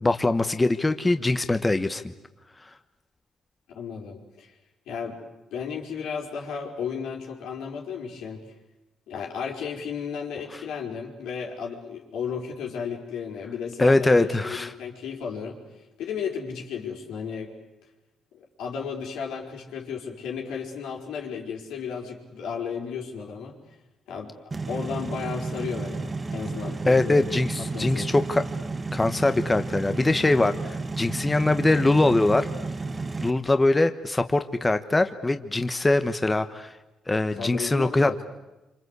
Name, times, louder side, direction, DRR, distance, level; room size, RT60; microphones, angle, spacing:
voice 1, 0.0-2.0 13.8-14.7 26.8-28.4 28.9-32.5 33.2-36.7 37.1-38.1, left 2 dB, 15° left, 9 dB, 1.2 m, -22 dB
voice 2, 3.7-4.6 4.9-5.2 5.5-8.4 9.1-15.6 16.0-17.5 18.3-23.6 24.1-24.4 24.7-27.2 27.6-28.1 37.4-38.2, left 6 dB, 85° left, 1 dB, 4.9 m, -34 dB
sound 1, 24.5-33.3, right 3 dB, 25° right, 1.4 m, -32 dB
27.0 x 26.0 x 8.2 m, 1.0 s
cardioid pair, 90°, 0 cm